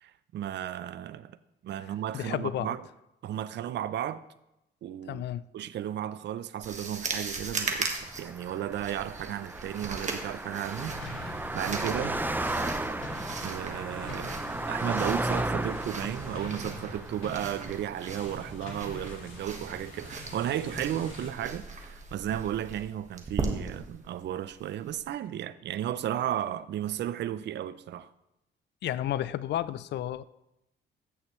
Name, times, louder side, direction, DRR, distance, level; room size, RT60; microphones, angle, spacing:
voice 1, 0.0-1.4 1.6-2.9 3.2-4.2 4.8-5.2 5.5-12.2 13.4-14.4 14.7-28.1, right 11 dB, 60° right, 0.5 m, -34 dB
voice 2, 2.1-2.7 5.1-5.5 28.8-30.2, left 12 dB, 60° left, 0.4 m, -32 dB
sound 1, 6.6-25.0, right 3 dB, 35° right, 1.4 m, -39 dB
Car passing by, 7.6-19.1, right 2 dB, 10° right, 0.5 m, -35 dB
sound 2, 10.7-21.3, left 2 dB, 85° left, 2.1 m, -44 dB
15.0 x 6.5 x 3.1 m
cardioid pair, 90°, 20 cm